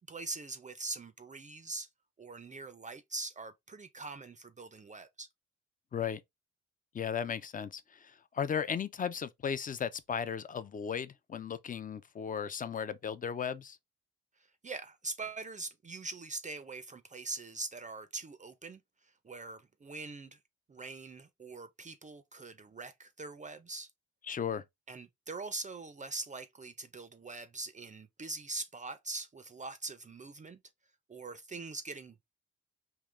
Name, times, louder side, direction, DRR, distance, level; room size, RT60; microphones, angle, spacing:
voice 1, 0.1-1.9 2.2-5.3 14.4-20.4 20.7-23.9 24.9-30.6 31.1-32.2, right 3 dB, 25° right, 0.5 m, -43 dB
voice 2, 6.9-13.8 24.3-24.6, left 7 dB, 30° left, 0.5 m, -36 dB
3.7 x 2.8 x 3.1 m
cardioid pair, 90°, 30 cm